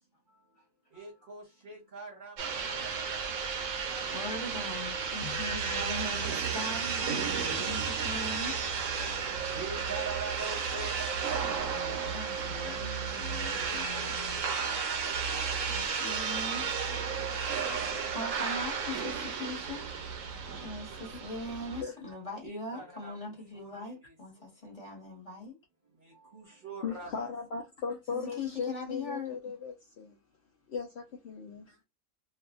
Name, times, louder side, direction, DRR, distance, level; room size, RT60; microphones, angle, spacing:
voice 1, 0.3-3.3 5.4-6.7 8.7-12.1 13.5-15.6 17.6-19.4 22.4-24.6 25.8-27.3, right 4 dB, 40° right, 0.9 m, -45 dB
sound 1, 2.4-21.8, right 6 dB, 70° right, 0.9 m, -33 dB
voice 2, 4.1-8.5 11.5-14.4 15.7-16.7 18.1-19.9 20.6-25.6 28.1-29.4, left 2 dB, 25° left, 1.2 m, -41 dB
voice 3, 26.8-30.2 30.7-31.8, left 5 dB, 60° left, 0.8 m, -38 dB
2.8 x 2.5 x 2.4 m
omnidirectional pair, 1.5 m